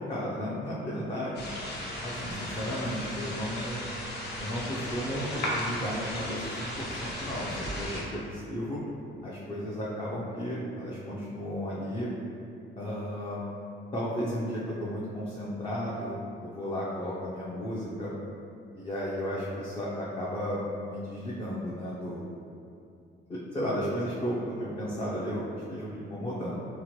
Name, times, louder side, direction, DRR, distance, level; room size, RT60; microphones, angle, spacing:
voice 1, 0.1-1.5 2.0-3.8 4.4-8.8 9.2-12.1 12.8-13.4 13.9-18.1 18.7-22.2 23.3-26.6, equal, 25° left, -7 dB, 0.4 m, -34 dB
sound 1, 1.3-8.0, equal, 55° left, 0.7 m, -36 dB
2.9 x 2.2 x 2.9 m, 2.6 s
cardioid pair, 90°, 20 cm